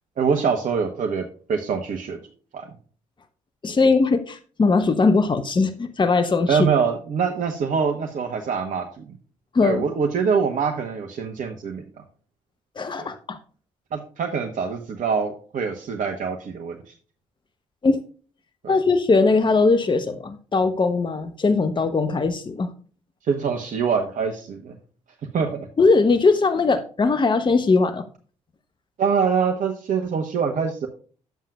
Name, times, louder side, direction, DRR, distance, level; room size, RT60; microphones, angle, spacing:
voice 1, 0.2-2.2 2.5-2.7 3.7-3.8 6.5-9.1 9.6-11.8 13.0-13.1 13.9-16.9 18.6-18.7 23.2-24.8 25.3-25.7 29.0-30.9, right 6 dB, 50° right, 1.1 m, -24 dB
voice 2, 3.6-6.6 9.5-9.8 12.8-13.4 17.8-18.0 18.7-22.7 25.8-28.0, left 3 dB, 30° left, 1.0 m, -20 dB
10.5 x 7.4 x 2.4 m
hypercardioid pair, 45°, 17 cm